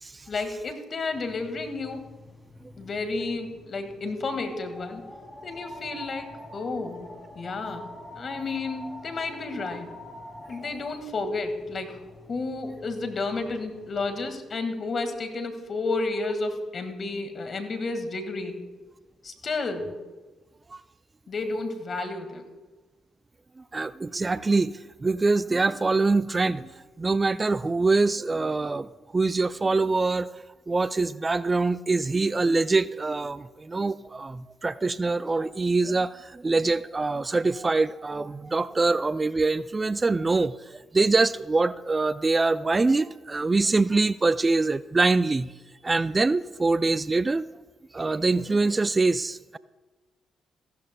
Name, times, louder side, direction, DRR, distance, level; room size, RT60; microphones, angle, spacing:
voice 1, 0.3-2.0 2.8-5.0 5.4-7.1 7.3-7.9 8.1-9.9 10.5-12.0 12.3-18.6 19.2-19.9 21.3-22.4, left 3 dB, 50° left, 8 dB, 1.7 m, -31 dB
sound 1, 1.1-14.3, left 1 dB, 15° left, 3.0 m, -46 dB
voice 2, 23.7-26.7 27.0-30.3 30.7-45.5 45.8-47.4 47.9-49.6, right 3 dB, 30° right, 16 dB, 0.3 m, -24 dB
15.5 x 12.5 x 2.2 m, 1.2 s
supercardioid pair, 55°, 0 cm